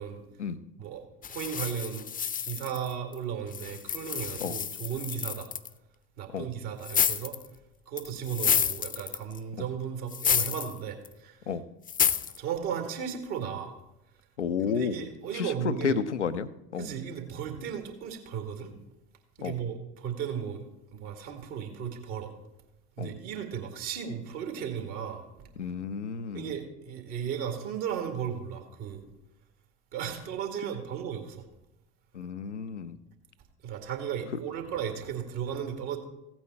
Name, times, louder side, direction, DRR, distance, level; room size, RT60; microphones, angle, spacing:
voice 1, 0.8-2.1 2.4-5.5 6.2-7.4 7.9-11.4 12.4-13.7 14.6-16.0 16.8-18.8 19.4-22.3 23.0-25.2 26.3-29.0 29.9-31.4 33.6-36.0, right 8 dB, 60° right, 4 dB, 2.2 m, -35 dB
sound 1, 1.2-3.1 3.5-5.7 6.8-7.5 8.0-9.4 10.1-10.7 11.0-11.1 11.9-12.4, left 8 dB, 25° left, 0.7 m, -29 dB
voice 2, 14.4-15.1 15.3-16.9 19.4-19.6 23.0-23.1 25.6-26.5 32.1-33.0, left 6 dB, 85° left, 13 dB, 0.6 m, -31 dB
16.0 x 8.8 x 4.4 m, 0.90 s
figure-of-eight pair, 60°, 34 cm